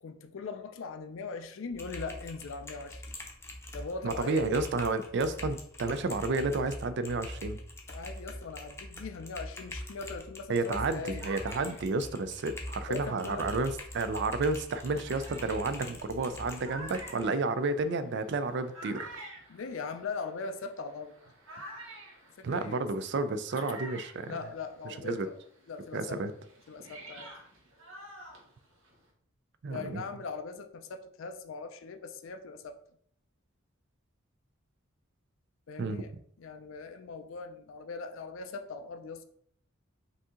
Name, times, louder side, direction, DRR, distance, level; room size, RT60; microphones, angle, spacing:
voice 1, 0.0-3.2 3.7-4.4 7.9-11.2 12.9-13.5 19.5-21.1 22.4-22.9 24.3-25.4 25.7-26.2 26.7-27.4 29.7-32.8 35.7-36.1 36.4-39.3, left 4 dB, 70° left, 7 dB, 0.4 m, -40 dB
Typing, 1.7-17.2, left 1 dB, 15° left, 0.6 m, -43 dB
voice 2, 4.0-7.6 10.5-19.1 22.4-24.3 25.0-25.3 25.9-26.3 29.6-30.0 35.8-36.0, right 3 dB, 60° right, 11 dB, 0.4 m, -31 dB
sound 1, 10.9-13.8 14.4-14.5 15.0-25.1 25.3-29.1, right 1 dB, 85° right, 1.4 m, -49 dB
5.1 x 2.8 x 3.6 m, 0.64 s
head